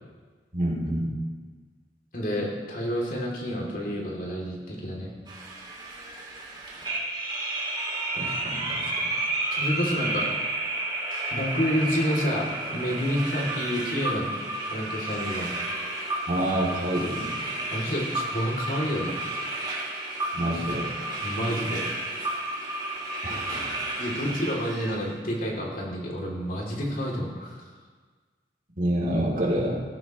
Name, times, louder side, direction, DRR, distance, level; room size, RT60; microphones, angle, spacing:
voice 1, 0.5-1.1 8.1-8.9 16.3-17.4 20.3-20.9 23.2-23.7 28.8-29.8, right 1 dB, 50° right, -4 dB, 3.3 m, -27 dB
voice 2, 2.1-5.1 9.5-10.3 11.3-14.3 14.6-15.5 17.6-19.2 21.2-22.1 24.0-27.6, equal, 50° left, -2 dB, 3.1 m, -29 dB
sound 1, 5.3-25.0, right 2 dB, 25° right, 2.5 m, -31 dB
16.0 x 15.5 x 3.2 m, 1.4 s
head